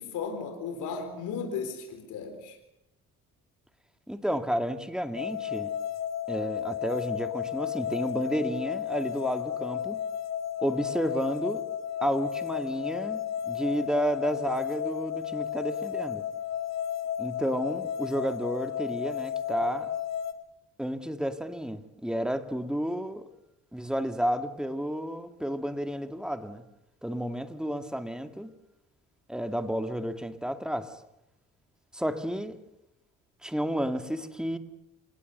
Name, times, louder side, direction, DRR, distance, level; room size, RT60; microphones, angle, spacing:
voice 1, 0.0-2.6, left 5 dB, 85° left, 4.0 m, -35 dB
voice 2, 4.1-5.7 6.3-10.0 10.6-11.6 12.0-16.3 17.2-19.9 20.8-23.3 23.7-26.6 27.0-28.5 29.3-30.9 31.9-32.6 33.4-34.6, equal, ahead, 2.1 m, -31 dB
sound 1, 5.2-20.3, left 9 dB, 60° left, 1.8 m, -33 dB
27.0 x 19.0 x 6.8 m
cardioid pair, 90°, 30 cm